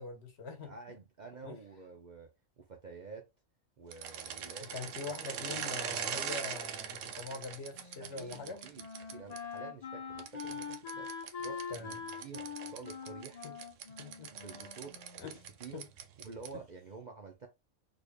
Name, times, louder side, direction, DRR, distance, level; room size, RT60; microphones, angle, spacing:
voice 1, 0.0-0.7 1.4-1.6 4.7-8.6 11.7-12.0 13.4-13.5 14.0-14.3 15.2-15.3 15.7-15.9 16.5-16.6, left 4 dB, 60° left, 1.2 m, -43 dB
voice 2, 0.6-2.3 2.6-3.3 3.8-5.1 5.6-5.8 8.0-8.9 9.1-13.5 14.3-15.0 15.6-15.9 16.2-17.5, right 5 dB, 45° right, 0.6 m, -49 dB
sound 1, 3.9-9.4 10.2-16.7, right 8 dB, 80° right, 0.9 m, -42 dB
Wind instrument woodwind instrument, 7.7-15.5, left 6 dB, 40° left, 0.7 m, -44 dB
4.0 x 3.3 x 2.2 m
omnidirectional pair, 1.3 m